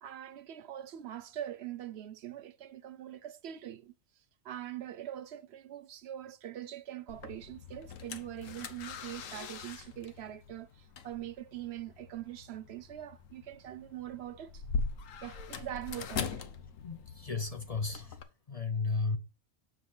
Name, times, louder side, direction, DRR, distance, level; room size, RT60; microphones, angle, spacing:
voice 1, 0.0-3.9 4.4-14.6 15.2-16.4, right 12 dB, 60° right, 0.8 m, -43 dB
sound 1, 7.1-18.2, left 5 dB, 75° left, 1.2 m, -42 dB
voice 2, 16.8-18.2 18.5-19.2, left 4 dB, 35° left, 0.7 m, -34 dB
7.4 x 4.9 x 5.5 m
omnidirectional pair, 1.4 m